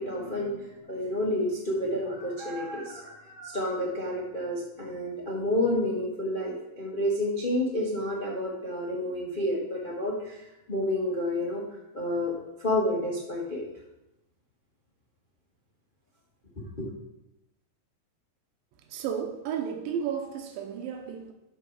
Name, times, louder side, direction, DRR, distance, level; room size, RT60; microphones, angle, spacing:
voice 1, 0.0-10.4 10.7-11.6 11.9-12.3 12.6-13.6 16.8-16.9, left 1 dB, 60° left, -4 dB, 0.5 m, -30 dB
voice 2, 18.9-21.3, right 8 dB, 90° right, 4 dB, 2.6 m, -33 dB
13.0 x 4.6 x 4.6 m, 0.90 s
omnidirectional pair, 4.0 m